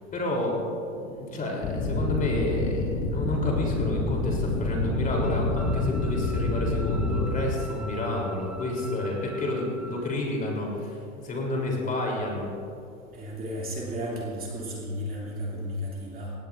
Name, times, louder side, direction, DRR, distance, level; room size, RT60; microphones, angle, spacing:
voice 1, 0.1-0.6 0.8-10.9 11.2-12.5, left 1 dB, 20° left, -1 dB, 3.4 m, -30 dB
sound 1, 1.6-7.4, left 2 dB, 45° left, 2.4 m, -28 dB
sound 2, 5.2-10.1, right 2 dB, 5° right, 0.4 m, -44 dB
voice 2, 13.1-16.3, equal, 20° right, -4 dB, 2.7 m, -33 dB
18.0 x 17.0 x 2.6 m, 2.5 s
hypercardioid pair, 120°, 40 cm